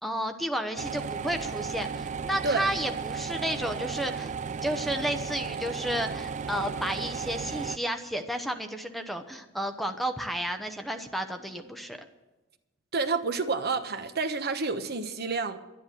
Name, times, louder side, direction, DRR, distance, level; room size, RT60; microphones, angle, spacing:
voice 1, 0.0-4.3 4.6-12.1, equal, ahead, 0.8 m, -32 dB
sound 1, 0.8-7.8, right 5 dB, 35° right, 0.4 m, -34 dB
voice 2, 12.9-15.6, right 4 dB, 55° right, 1.1 m, -29 dB
12.0 x 10.5 x 7.6 m
head